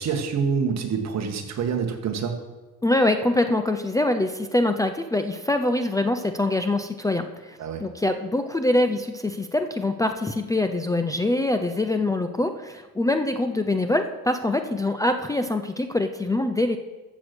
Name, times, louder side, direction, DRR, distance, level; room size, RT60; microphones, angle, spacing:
voice 1, 0.0-2.4 7.6-7.8, right 6 dB, 40° right, 4 dB, 2.0 m, -26 dB
voice 2, 2.8-16.8, left 2 dB, 10° left, 7 dB, 0.6 m, -24 dB
14.5 x 7.0 x 6.2 m, 1.2 s
cardioid pair, 120°, 40 cm